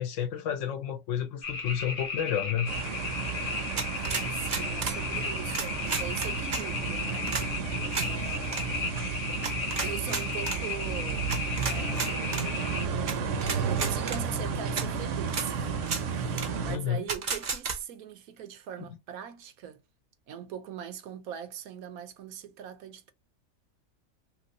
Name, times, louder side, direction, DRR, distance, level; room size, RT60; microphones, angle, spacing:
voice 1, 0.0-2.7 16.7-17.0, left 9 dB, 65° left, 0.9 m, -30 dB
sound 1, 1.4-12.9, left 4 dB, 45° left, 0.9 m, -35 dB
sound 2, 2.7-16.8, right 5 dB, 65° right, 0.9 m, -33 dB
sound 3, 3.8-5.0 5.5-6.6 7.3-7.5 7.9-8.1 8.5-8.6 9.4-10.6 11.3-12.5 13.1-13.2 13.4-14.2 14.8-14.9 15.3-15.5 15.8-16.0 16.4-16.5 17.1-17.8, right 5 dB, 45° right, 0.5 m, -32 dB
voice 2, 3.9-7.4 8.0-9.0 9.8-12.7 13.1-15.8 16.0-19.8 20.3-23.1, right 9 dB, 90° right, 1.1 m, -41 dB
3.0 x 3.0 x 2.7 m
omnidirectional pair, 1.5 m